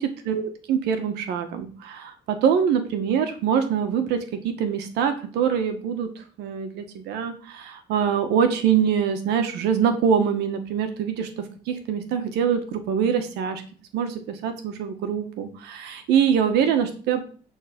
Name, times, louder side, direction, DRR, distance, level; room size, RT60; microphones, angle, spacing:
voice 1, 0.3-6.1 6.4-13.6 13.9-17.2, right 7 dB, 85° right, 7 dB, 1.4 m, -24 dB
11.0 x 3.9 x 5.2 m, 0.43 s
cardioid pair, 110°, 17 cm